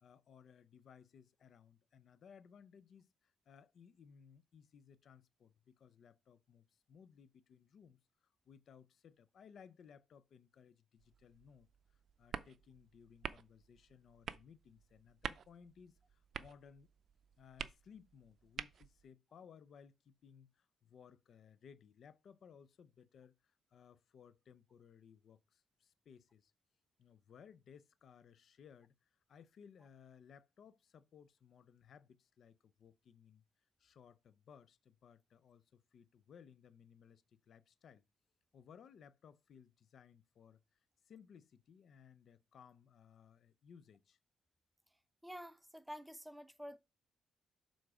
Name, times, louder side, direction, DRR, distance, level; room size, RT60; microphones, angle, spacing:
voice 1, 0.0-16.9 17.4-26.5 27.0-33.4 33.8-38.0 38.5-40.8 41.0-44.2, left 7 dB, 60° left, 0.5 m, -61 dB
sound 1, 11.0-19.1, right 7 dB, 55° right, 0.4 m, -49 dB
voice 2, 45.2-46.8, equal, 5° right, 0.5 m, -49 dB
6.8 x 3.8 x 4.8 m
cardioid pair, 90°, 0 cm